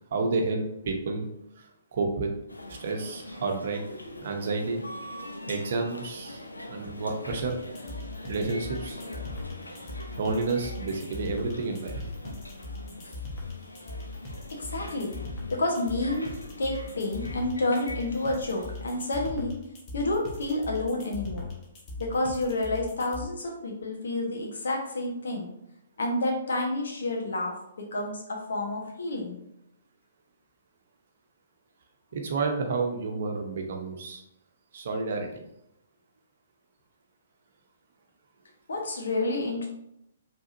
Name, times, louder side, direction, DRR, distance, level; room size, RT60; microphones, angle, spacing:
voice 1, 0.1-1.3 1.6-2.3 2.7-3.8 4.2-4.8 5.5-6.4 6.7-7.6 8.3-9.0 10.2-12.1 32.1-34.2 34.7-35.3, right 3 dB, 55° right, 3 dB, 0.9 m, -30 dB
sound 1, 2.5-19.2, left 1 dB, 85° left, 0.6 m, -43 dB
sound 2, 7.3-23.3, left 3 dB, 25° left, 1.3 m, -39 dB
voice 2, 14.5-15.1 15.5-16.3 16.6-19.5 19.9-21.5 22.0-25.5 26.0-29.4 38.7-39.7, left 2 dB, 65° left, 0 dB, 1.2 m, -29 dB
4.9 x 3.5 x 2.7 m, 0.80 s
figure-of-eight pair, 125°, 0 cm